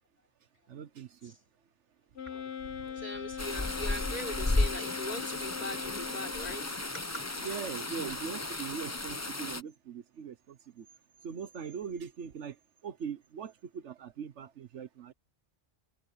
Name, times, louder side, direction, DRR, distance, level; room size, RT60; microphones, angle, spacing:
voice 1, 0.7-1.4 2.8-2.9 7.4-10.9 11.2-15.1, right 7 dB, 75° right, 1.3 m, -41 dB
Wind instrument woodwind instrument, 2.1-6.8, left 8 dB, 60° left, 1.3 m, -41 dB
voice 2, 2.3-7.2, left 1 dB, 35° left, 4.9 m, -41 dB
sound 1, 3.4-9.6, left 2 dB, 15° left, 0.8 m, -34 dB
omnidirectional pair, 1.2 m